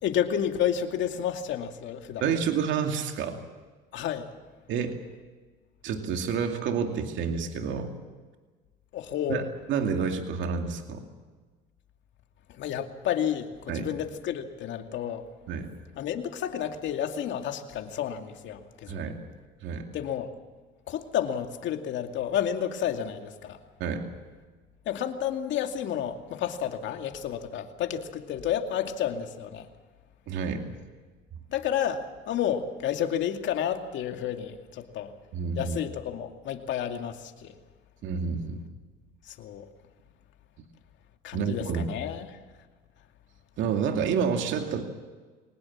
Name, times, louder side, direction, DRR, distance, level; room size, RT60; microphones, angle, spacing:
voice 1, 0.0-2.3 3.9-4.3 8.9-9.5 12.5-15.3 16.0-19.0 19.9-20.3 20.9-23.6 24.9-29.7 31.5-35.1 35.6-37.5 39.3-39.7 41.2-42.4, left 9 dB, 60° left, 5 dB, 2.4 m, -31 dB
voice 2, 2.2-3.4 4.7-4.9 5.8-7.9 9.3-11.0 13.7-13.9 15.5-15.7 18.9-19.2 19.6-19.8 23.8-24.0 30.3-30.6 35.3-35.8 38.0-38.6 41.3-41.9 43.6-44.8, right 6 dB, 65° right, 4 dB, 2.5 m, -29 dB
23.0 x 19.5 x 7.4 m, 1.4 s
cardioid pair, 105°, 21 cm